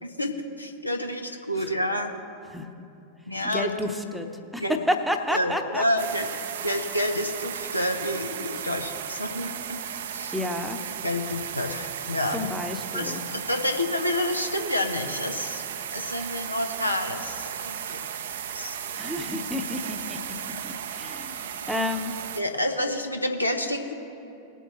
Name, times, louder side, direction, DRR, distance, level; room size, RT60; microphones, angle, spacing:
voice 1, 0.0-0.3 0.6-2.1 3.3-3.7 4.6-4.8 5.3-6.3 6.6-9.8 10.1-10.3 11.0-12.5 12.9-15.6 15.9-18.0 18.5-18.8 22.4-23.9, left 1 dB, 85° left, 4 dB, 0.8 m, -28 dB
voice 2, 3.4-4.3 4.5-5.8 10.3-10.8 12.3-13.2 19.0-20.2 20.6-22.1, left 1 dB, ahead, 6 dB, 0.9 m, -30 dB
sound 1, 6.0-22.4, right 8 dB, 60° right, 0.6 m, -35 dB
19.5 x 8.0 x 3.1 m, 2.7 s
figure-of-eight pair, 90°, 0 cm